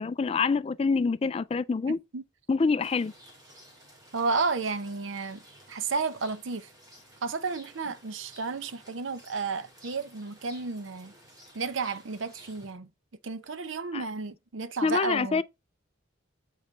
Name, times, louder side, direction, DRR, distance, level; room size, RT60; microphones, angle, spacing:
voice 1, 0.0-2.0 2.5-3.1 13.9-14.0 14.8-15.4, left 4 dB, 30° left, 0.3 m, -26 dB
voice 2, 1.9-2.2 4.1-5.4 5.7-6.7 7.2-11.1 11.5-12.9 13.2-15.4, right 4 dB, 80° right, 0.7 m, -32 dB
Rain, 2.8-12.7, right 1 dB, 20° right, 2.2 m, -54 dB
8.2 x 3.9 x 3.3 m
head